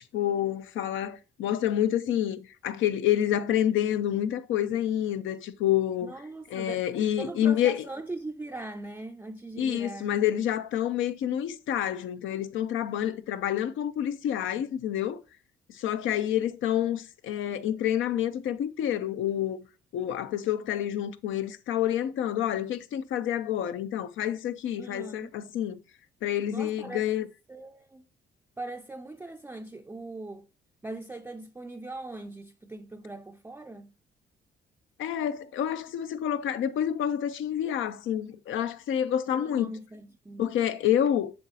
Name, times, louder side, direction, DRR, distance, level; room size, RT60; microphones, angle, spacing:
voice 1, 0.1-6.1 6.5-7.8 9.6-15.2 15.7-19.6 19.9-25.8 26.2-27.3 35.0-39.7 40.4-41.3, left 10 dB, 80° left, 0.6 m, -28 dB
voice 2, 6.0-6.8 7.2-10.2 24.8-25.3 26.5-27.1 27.5-28.1 28.6-30.5 30.8-33.9 39.3-40.5, right 2 dB, 10° right, 0.4 m, -40 dB
7.9 x 6.3 x 2.7 m
cardioid pair, 90°, 20 cm